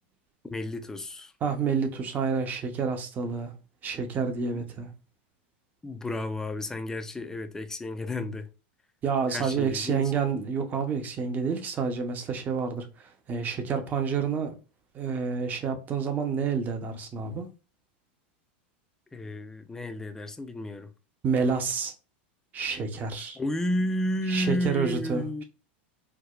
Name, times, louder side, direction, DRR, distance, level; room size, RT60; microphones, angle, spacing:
voice 1, 0.5-1.3 4.5-4.6 5.8-8.5 9.3-10.1 19.1-20.9 23.4-25.4, left 1 dB, 10° left, 0.4 m, -32 dB
voice 2, 1.4-3.5 3.8-4.9 9.0-14.5 14.9-17.5 21.2-21.9 22.5-23.4 24.3-25.4, right 5 dB, 30° right, 0.7 m, -29 dB
4.6 x 2.1 x 2.4 m
supercardioid pair, 125°, 6 cm